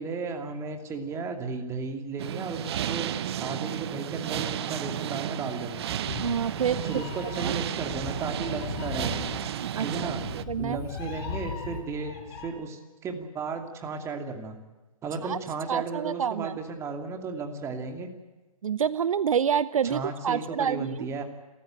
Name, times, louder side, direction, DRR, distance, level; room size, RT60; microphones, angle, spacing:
voice 1, 0.0-5.8 6.8-9.2 9.8-10.3 10.6-14.6 15.0-18.1 19.8-21.2, right 4 dB, 15° right, 5 dB, 2.6 m, -34 dB
sound 1, 2.2-10.4, right 10 dB, 45° right, 1.0 m, -33 dB
Meow, 5.8-12.5, left 6 dB, 40° left, 6.9 m, -38 dB
voice 2, 6.2-7.0 7.4-7.5 9.7-10.1 10.3-10.8 15.2-15.4 15.7-16.6 18.6-21.1, right 7 dB, 65° right, 17 dB, 0.8 m, -28 dB
29.0 x 14.0 x 9.2 m, 1.2 s
hypercardioid pair, 140°, 19 cm